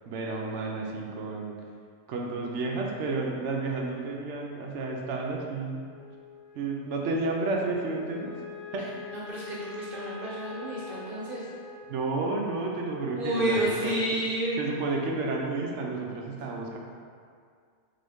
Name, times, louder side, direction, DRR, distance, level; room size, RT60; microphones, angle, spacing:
voice 1, 0.0-1.5 2.1-5.8 6.5-8.3 8.7-9.0 11.9-13.9 14.6-16.8, right 3 dB, 70° right, 0 dB, 0.9 m, -31 dB
Wind instrument woodwind instrument, 5.8-14.3, left 6 dB, 60° left, 1.0 m, -45 dB
voice 2, 9.3-11.5 13.1-14.6, right 1 dB, 45° right, -8 dB, 1.3 m, -30 dB
3.9 x 3.7 x 3.5 m, 2.1 s
omnidirectional pair, 1.3 m